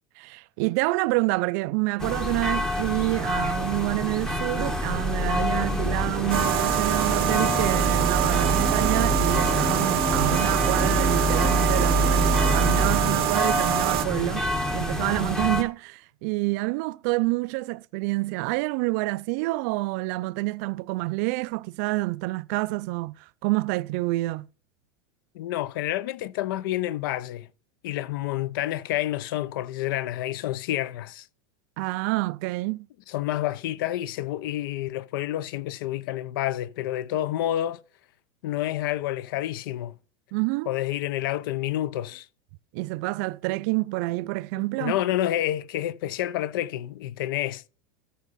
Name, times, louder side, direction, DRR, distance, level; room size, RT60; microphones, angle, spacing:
voice 1, 0.2-24.5 31.8-32.9 40.3-40.7 42.7-45.0, right 22 dB, 40° right, 0.3 m, -28 dB
sound 1, 2.0-15.6, equal, 5° left, 0.8 m, -26 dB
sound 2, 6.3-14.0, right 17 dB, 70° right, 0.7 m, -26 dB
voice 2, 25.3-27.5 27.8-31.3 33.1-37.8 38.4-39.9 40.7-42.3 44.6-47.7, left 13 dB, 60° left, 0.6 m, -29 dB
13.5 x 5.4 x 4.1 m
supercardioid pair, 170°, 13 cm